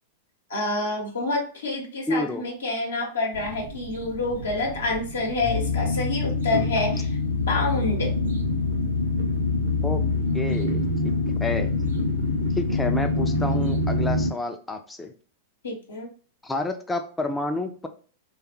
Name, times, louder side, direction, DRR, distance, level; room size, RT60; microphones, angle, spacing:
voice 1, 0.5-7.2 7.5-8.1 15.6-16.1, left 2 dB, 75° left, 0 dB, 0.8 m, -28 dB
voice 2, 2.1-2.4 9.8-10.0 10.3-11.1 11.4-11.7 12.5-15.1 16.4-17.9, left 2 dB, 10° left, 5 dB, 0.4 m, -29 dB
sound 1, 3.3-14.3, left 3 dB, 70° right, 0.7 m, -25 dB
3.1 x 2.3 x 2.9 m, 0.41 s
figure-of-eight pair, 95°, 0 cm